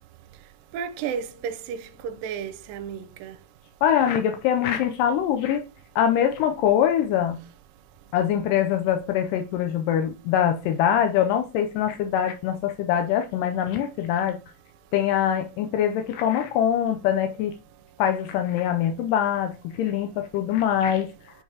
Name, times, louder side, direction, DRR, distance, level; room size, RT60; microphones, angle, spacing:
voice 1, 0.7-3.4, right 7 dB, 90° right, 2.4 m, -33 dB
voice 2, 3.8-5.7 6.0-7.4 8.1-14.4 14.9-17.5 18.0-21.1, left 9 dB, 80° left, 2.2 m, -23 dB
8.6 x 4.8 x 2.8 m
omnidirectional pair, 3.9 m